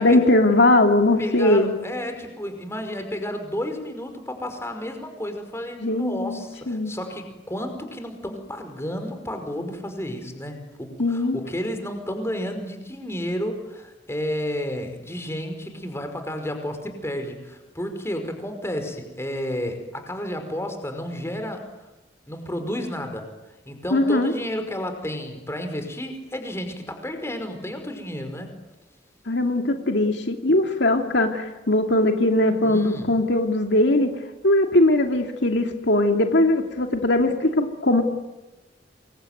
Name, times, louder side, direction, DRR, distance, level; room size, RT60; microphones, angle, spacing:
voice 1, 0.0-1.7 5.8-6.9 11.0-11.4 23.9-24.3 29.3-34.1 34.4-38.0, left 1 dB, 70° left, 4 dB, 2.6 m, -20 dB
voice 2, 1.2-21.6 22.3-23.3 23.7-28.5 32.6-33.1, equal, 15° left, 6 dB, 5.2 m, -31 dB
28.0 x 23.0 x 9.3 m, 1.0 s
head